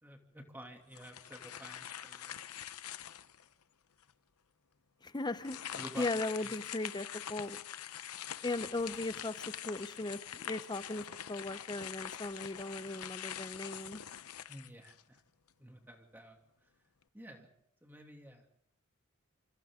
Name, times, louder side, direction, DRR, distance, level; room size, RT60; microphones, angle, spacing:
voice 1, 0.0-2.4 5.7-6.1 6.4-6.5 14.5-15.2 15.6-16.7 17.1-17.5 17.8-18.5, equal, 10° right, 2 dB, 2.5 m, -51 dB
sound 1, 0.9-3.5 4.0-4.1 5.4-15.2, left 10 dB, 85° left, 0.8 m, -44 dB
voice 2, 5.0-5.6 6.0-7.6 8.4-14.0, left 2 dB, 20° left, 13 dB, 0.7 m, -38 dB
28.0 x 26.5 x 3.7 m, 0.69 s
head